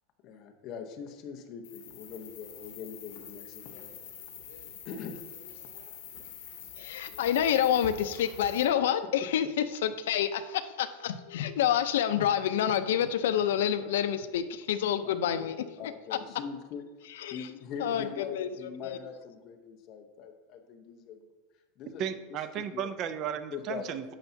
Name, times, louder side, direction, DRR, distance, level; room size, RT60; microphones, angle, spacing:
voice 1, 0.2-3.9 4.8-5.2 15.0-15.1 15.8-16.8 17.3-21.2 21.8-22.0 22.7-22.8 23.5-23.9, left 6 dB, 35° left, 4 dB, 0.8 m, -42 dB
sound 1, 1.6-8.7, left 8 dB, 60° left, 1.9 m, -46 dB
voice 2, 6.8-9.5 9.8-15.8 16.1-16.2 17.2-17.5 17.8-18.5 18.8-19.0, left 10 dB, 85° left, 11 dB, 0.5 m, -28 dB
voice 3, 22.0-24.2, right 9 dB, 30° right, 12 dB, 0.4 m, -34 dB
10.0 x 6.9 x 2.7 m, 1.3 s
supercardioid pair, 175°, 0 cm